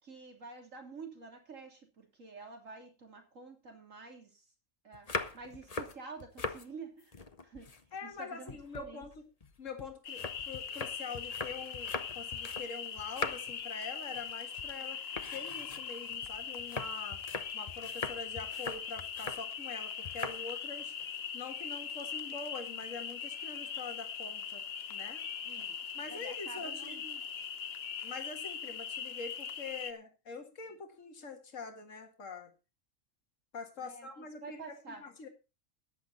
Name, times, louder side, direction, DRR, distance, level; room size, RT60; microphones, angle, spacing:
voice 1, 0.0-4.4 4.8-7.7 8.0-9.1 25.4-27.2 33.8-35.0, right 4 dB, 75° right, 3 dB, 3.5 m, -49 dB
sound 1, 4.9-6.7 7.0-8.2 8.5-12.7 13.0-13.6 14.0-14.3 14.6-14.8 15.1-19.5 20.0-20.4 20.8-21.2, left 4 dB, 30° left, 1.0 m, -41 dB
voice 2, 7.9-9.1 9.6-15.0 15.3-17.2 17.5-20.9 21.3-24.6 24.9-25.2 25.9-27.0 28.0-32.5 33.5-35.3, left 4 dB, 70° left, 5 dB, 2.2 m, -44 dB
sound 2, 10.0-29.9, left 7 dB, 55° left, 1.1 m, -41 dB
14.0 x 10.0 x 4.2 m, 0.30 s
omnidirectional pair, 1.4 m